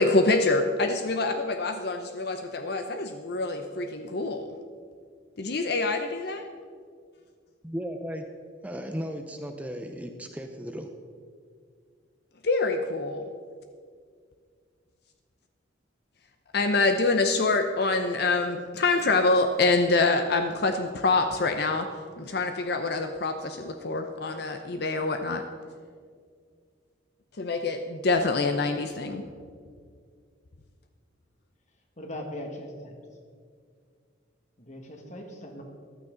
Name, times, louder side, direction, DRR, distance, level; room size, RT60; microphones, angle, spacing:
voice 1, 0.0-4.5 5.4-6.5 12.4-13.2 16.5-21.9 22.2-25.4 27.4-29.2, left 3 dB, 55° left, 6 dB, 0.7 m, -25 dB
voice 2, 7.6-8.3 8.6-10.9, equal, 10° right, 5 dB, 0.6 m, -35 dB
voice 3, 32.0-32.9 34.6-35.6, left 1 dB, 40° left, 2 dB, 1.8 m, -39 dB
14.5 x 12.0 x 3.9 m, 2.1 s
head